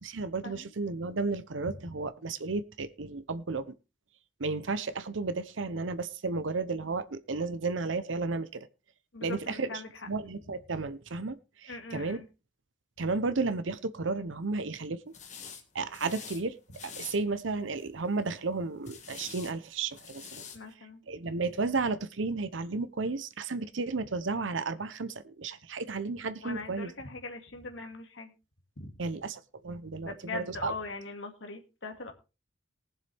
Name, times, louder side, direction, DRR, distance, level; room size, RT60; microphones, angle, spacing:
voice 1, 0.0-3.7 4.4-8.7 9.2-9.7 10.1-12.2 13.0-15.0 15.7-16.6 16.8-20.4 21.1-26.9 29.0-30.7, right 3 dB, 80° right, 12 dB, 0.8 m, -33 dB
voice 2, 9.1-9.9 11.7-12.2 20.5-21.0 26.4-28.3 28.8-28.9 30.0-32.1, left 3 dB, 75° left, 4 dB, 2.2 m, -41 dB
sound 1, 15.1-15.6 15.9-16.4 16.7-17.2 17.7-18.1 18.8-19.5 19.9-20.6, left 6 dB, 40° left, 1.9 m, -45 dB
19.5 x 7.4 x 3.4 m, 0.30 s
head